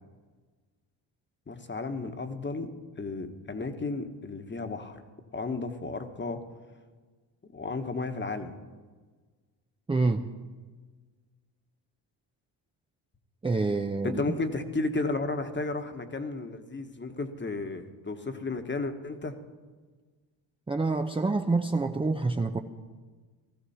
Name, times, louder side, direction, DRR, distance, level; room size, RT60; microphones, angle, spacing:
voice 1, 1.5-5.0 5.3-6.4 7.5-8.5 14.0-19.4, left 3 dB, 25° left, 8 dB, 1.3 m, -33 dB
voice 2, 9.9-10.3 13.4-14.2 20.7-22.6, right 3 dB, 10° right, 5 dB, 0.6 m, -27 dB
16.0 x 14.0 x 4.3 m, 1.4 s
cardioid pair, 80°, 47 cm